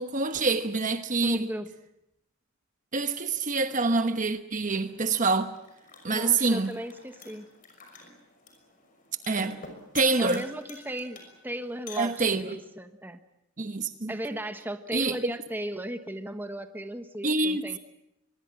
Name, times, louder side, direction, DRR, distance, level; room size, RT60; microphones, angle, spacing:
voice 1, 0.0-1.5 2.9-5.5 6.0-6.7 9.3-9.6 9.9-10.4 12.0-12.6 13.6-14.1 14.9-15.2 17.2-17.8, right 3 dB, 35° right, 1.1 m, -26 dB
voice 2, 1.2-1.7 6.1-7.5 10.2-13.2 14.1-17.8, right 1 dB, 10° right, 1.3 m, -36 dB
sound 1, 4.6-12.6, left 3 dB, 40° left, 6.0 m, -48 dB
24.0 x 22.0 x 7.7 m
head